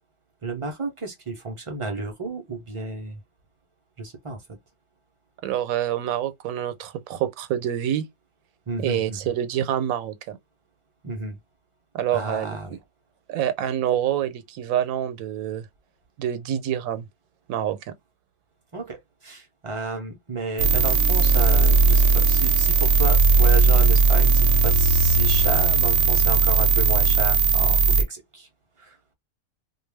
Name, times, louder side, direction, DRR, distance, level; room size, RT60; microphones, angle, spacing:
voice 1, 0.4-3.2 4.0-4.4 8.7-9.2 11.0-11.4 12.1-12.8 18.7-28.5 28.8-29.0, right 3 dB, 50° right, 0.4 m, -32 dB
voice 2, 5.4-8.0 8.8-10.4 11.9-12.6 13.3-15.7 16.2-17.0 17.5-17.9, right 10 dB, 85° right, 1.0 m, -26 dB
sound 1, 20.6-28.0, right 4 dB, 65° right, 0.8 m, -18 dB
2.3 x 2.2 x 3.2 m
omnidirectional pair, 1.4 m